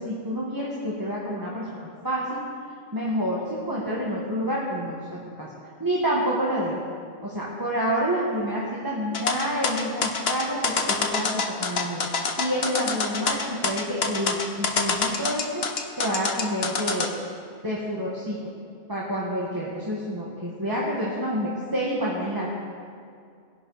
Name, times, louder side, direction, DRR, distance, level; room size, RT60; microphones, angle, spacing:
voice 1, 0.0-2.4 2.9-5.5 5.8-6.8 7.2-15.5 16.0-17.1 17.6-18.4 18.9-22.6, equal, 15° right, -6 dB, 1.8 m, -28 dB
sound 1, 9.1-17.1, left 4 dB, 55° left, 1.2 m, -26 dB
20.5 x 11.0 x 4.2 m, 2.3 s
omnidirectional pair, 1.3 m